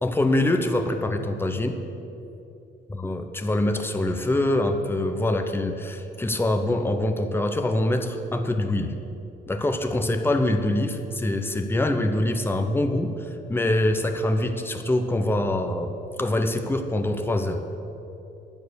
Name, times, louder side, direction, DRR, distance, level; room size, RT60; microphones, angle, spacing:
voice 1, 0.0-1.8 3.0-8.9 9.5-15.9 16.2-17.6, left 1 dB, 10° left, 5 dB, 0.9 m, -24 dB
10.5 x 9.3 x 6.4 m, 2.9 s
cardioid pair, 90°, 20 cm